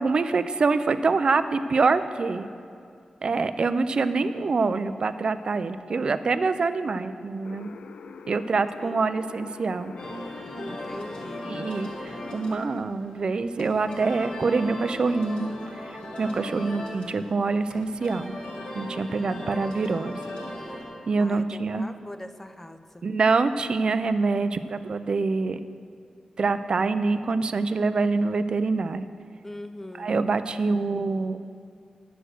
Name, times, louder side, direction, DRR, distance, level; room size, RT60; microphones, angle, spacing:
voice 1, 0.0-2.5 3.2-7.7 8.3-9.9 11.5-18.3 18.7-20.2 21.1-21.8 23.0-25.6 26.4-29.0 30.0-31.4, right 4 dB, 45° right, 11 dB, 0.4 m, -25 dB
voice 2, 6.4-7.0 8.8-9.0 10.6-11.6 21.2-23.0 29.4-30.2, left 1 dB, 15° left, 9 dB, 0.4 m, -41 dB
sound 1, 7.4-12.8, left 5 dB, 75° left, 0.3 m, -44 dB
sound 2, 10.0-20.8, left 1 dB, 55° left, 2.1 m, -38 dB
9.9 x 7.8 x 6.4 m, 2.3 s
wide cardioid pair, 150°, 2 cm